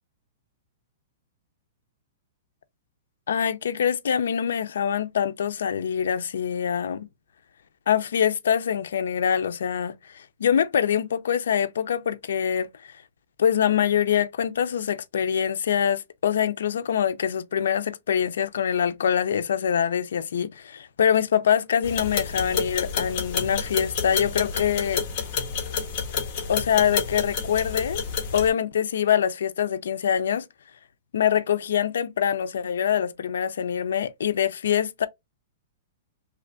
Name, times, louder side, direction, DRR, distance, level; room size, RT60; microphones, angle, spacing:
voice 1, 3.3-7.1 7.9-12.7 13.4-25.0 26.5-28.0 28.3-30.4 31.1-35.1, left 8 dB, 80° left, 0.4 m, -24 dB
sound 1, 21.8-28.5, left 6 dB, 30° left, 1.2 m, -29 dB
3.0 x 2.4 x 3.4 m
hypercardioid pair, 175°, 0 cm